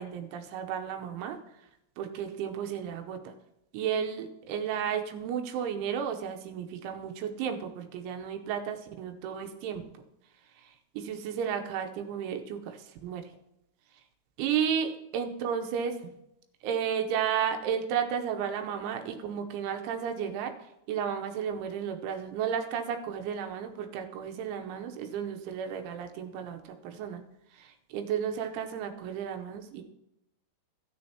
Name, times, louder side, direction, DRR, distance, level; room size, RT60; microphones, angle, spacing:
voice 1, 0.0-1.4 2.0-3.3 3.7-9.8 11.0-13.2 14.4-16.1 16.6-20.5 20.9-27.2 27.6-29.8, right 8 dB, 90° right, 5 dB, 3.2 m, -33 dB
14.0 x 9.8 x 2.9 m, 0.82 s
omnidirectional pair, 5.4 m